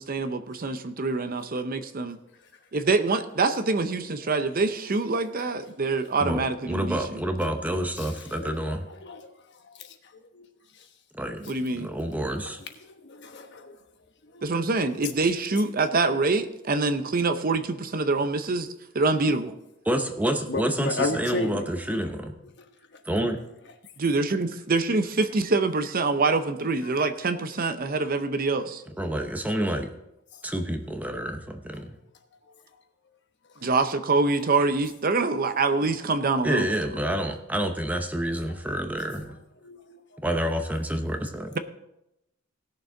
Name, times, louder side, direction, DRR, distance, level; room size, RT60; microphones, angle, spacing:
voice 1, 0.0-2.2 2.7-7.2 11.5-11.9 14.4-18.7 18.9-19.5 24.0-28.8 33.6-36.7, right 3 dB, 40° right, 10 dB, 0.6 m, -25 dB
voice 2, 6.2-8.9 11.1-11.4 11.7-12.6 19.9-22.4 23.1-23.4 29.0-29.9 30.4-32.0 36.4-39.4 40.2-41.5, right 1 dB, 5° right, 5 dB, 0.8 m, -28 dB
voice 3, 8.4-9.3 9.8-9.9 10.3-10.5 12.9-13.8 14.3-14.5 20.5-21.6 39.6-40.0, left 3 dB, 55° left, 6 dB, 1.1 m, -33 dB
18.0 x 6.8 x 3.8 m, 0.86 s
head